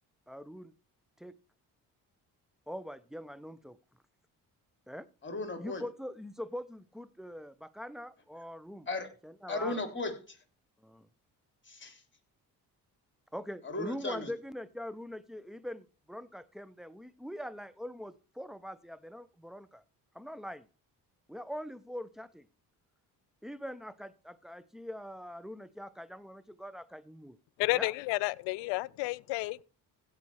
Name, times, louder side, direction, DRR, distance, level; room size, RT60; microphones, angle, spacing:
voice 1, 0.3-0.7 1.2-1.3 2.7-3.8 4.9-5.1 5.6-8.9 9.2-9.8 10.8-11.1 13.3-19.8 20.1-20.7 21.3-22.5 23.4-27.4 27.7-27.9, equal, ahead, 0.9 m, -43 dB
voice 2, 5.2-5.8 8.9-9.1 9.5-10.4 11.7-12.0 13.6-14.3, left 2 dB, 25° left, 3.6 m, -36 dB
voice 3, 27.6-29.6, left 22 dB, 85° left, 0.5 m, -31 dB
16.0 x 5.5 x 4.8 m
supercardioid pair, 60°, 42 cm